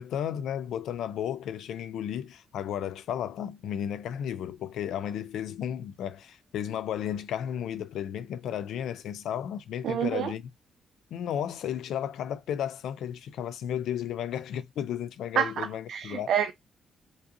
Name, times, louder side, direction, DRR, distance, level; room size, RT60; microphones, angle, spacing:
voice 1, 0.0-10.4 11.1-16.3, left 9 dB, 85° left, 0.4 m, -33 dB
voice 2, 9.8-10.3 15.4-16.5, right 8 dB, 75° right, 0.4 m, -28 dB
5.0 x 2.6 x 2.6 m
cardioid pair, 110°, 0 cm